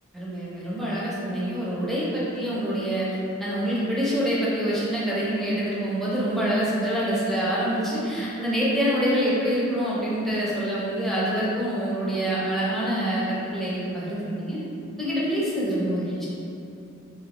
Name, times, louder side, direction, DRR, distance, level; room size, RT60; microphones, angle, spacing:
voice 1, 0.1-14.6 15.0-16.3, equal, ahead, -9 dB, 0.6 m, -26 dB
3.0 x 2.7 x 3.0 m, 2.8 s
head